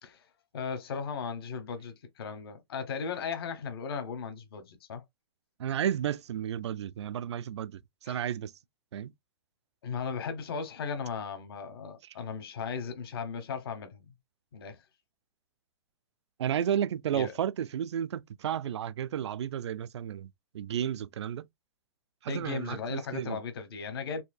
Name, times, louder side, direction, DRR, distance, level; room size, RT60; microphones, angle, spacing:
voice 1, 0.5-5.0 8.0-8.2 9.8-14.1 14.5-14.8 17.1-17.3 22.3-24.2, left 5 dB, 60° left, 1.1 m, -36 dB
voice 2, 5.6-7.8 8.1-8.5 8.9-9.1 16.4-20.3 20.5-21.5 22.2-23.4, right 9 dB, 90° right, 0.4 m, -32 dB
4.3 x 2.7 x 2.3 m
hypercardioid pair, 170°, 14 cm